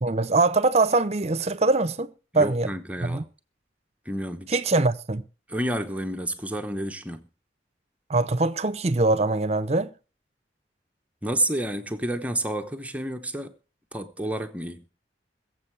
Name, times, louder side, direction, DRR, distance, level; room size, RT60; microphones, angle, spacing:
voice 1, 0.0-2.7 3.0-3.2 4.5-5.2 8.1-9.9, right 3 dB, 35° right, 0.8 m, -23 dB
voice 2, 2.3-3.3 4.0-4.6 5.5-7.2 11.2-13.5 13.9-14.8, right 1 dB, 10° right, 0.9 m, -30 dB
21.5 x 7.6 x 4.7 m
head